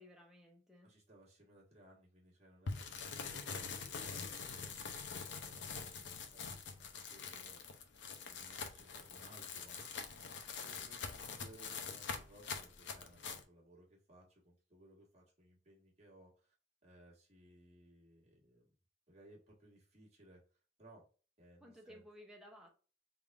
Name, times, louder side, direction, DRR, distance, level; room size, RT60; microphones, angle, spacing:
voice 1, 0.0-0.9 21.6-22.7, equal, 5° right, 0 dB, 0.7 m, -57 dB
voice 2, 0.8-4.9 5.2-7.6 8.3-10.0 10.3-16.5 16.8-18.7 19.1-20.4 20.8-21.0 21.4-22.0, right 1 dB, 35° right, -3 dB, 1.4 m, -62 dB
sound 1, 2.7-13.4, left 5 dB, 75° left, 0.6 m, -45 dB
3.5 x 2.4 x 3.4 m, 0.36 s
head